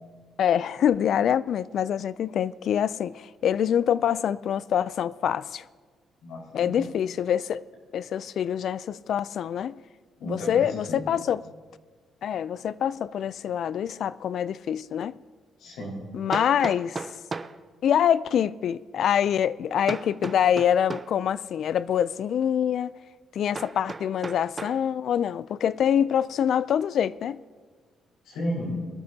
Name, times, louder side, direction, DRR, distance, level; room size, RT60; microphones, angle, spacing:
voice 1, 0.4-5.6 6.5-7.6 7.9-9.8 10.2-11.4 12.2-15.2 16.1-17.0 17.8-22.9 23.3-27.4, left 9 dB, 65° left, 0.3 m, -25 dB
voice 2, 6.2-6.8 10.2-11.0 15.6-16.0 28.2-28.8, equal, 90° left, 4.7 m, -33 dB
Hammer, 14.7-14.8 16.3-17.6 19.9-21.2 23.5-24.8, right 4 dB, 30° right, 0.5 m, -35 dB
22.0 x 12.5 x 2.8 m
cardioid pair, 90°, 0 cm